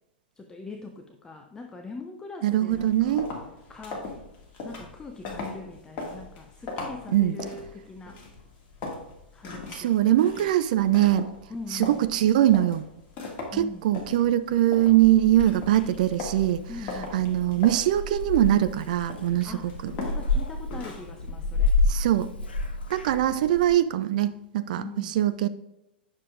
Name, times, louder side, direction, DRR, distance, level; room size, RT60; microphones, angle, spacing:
voice 1, 0.4-3.2 3.7-4.1 4.6-8.2 9.3-10.6 11.5-12.0 13.5-13.9 16.7-17.1 19.4-21.8 24.7-25.2, left 3 dB, 10° left, 5 dB, 0.5 m, -42 dB
voice 2, 2.4-3.3 7.1-7.4 9.7-11.3 11.7-12.9 13.5-16.7 17.1-19.5 19.8-19.9 21.9-22.3 22.9-25.5, right 13 dB, 50° right, 13 dB, 0.3 m, -22 dB
sound 1, 2.7-21.2, left 3 dB, 35° left, 1.8 m, -40 dB
Purr / Meow, 15.0-23.8, left 3 dB, 70° left, 0.8 m, -30 dB
9.6 x 6.4 x 2.4 m, 0.90 s
figure-of-eight pair, 100°, 6 cm